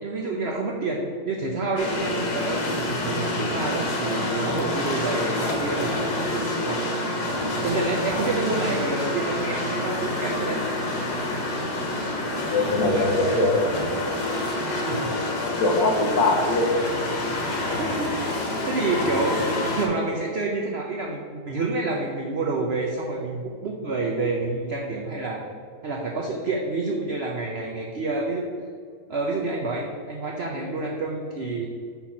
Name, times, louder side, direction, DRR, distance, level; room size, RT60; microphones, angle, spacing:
voice 1, 0.0-6.9 7.6-10.6 12.9-13.4 14.8-15.1 17.8-18.4 18.7-25.4 25.8-28.5 29.1-31.7, right 3 dB, 70° right, -1 dB, 0.6 m, -28 dB
sound 1, 1.8-19.9, left 1 dB, 65° left, 1.7 m, -27 dB
voice 2, 12.5-13.7 15.4-16.7, left 2 dB, 90° left, 1 dB, 1.7 m, -22 dB
5.7 x 4.2 x 5.8 m, 2.2 s
omnidirectional pair, 1.9 m